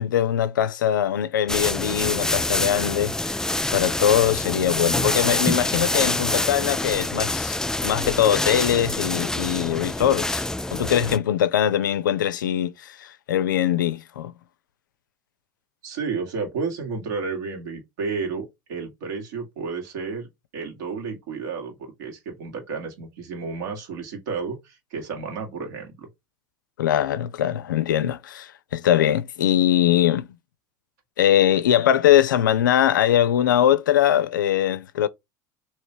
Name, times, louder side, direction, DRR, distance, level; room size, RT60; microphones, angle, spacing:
voice 1, 0.0-3.4 3.7-7.6 7.8-10.5 10.7-14.3 26.8-30.3 31.2-35.1, left 10 dB, 85° left, 0.4 m, -21 dB
sound 1, 1.5-11.2, left 2 dB, 5° left, 0.3 m, -26 dB
voice 2, 15.8-26.1, right 5 dB, 70° right, 1.7 m, -32 dB
3.2 x 2.9 x 4.3 m
hypercardioid pair, 80°, 10 cm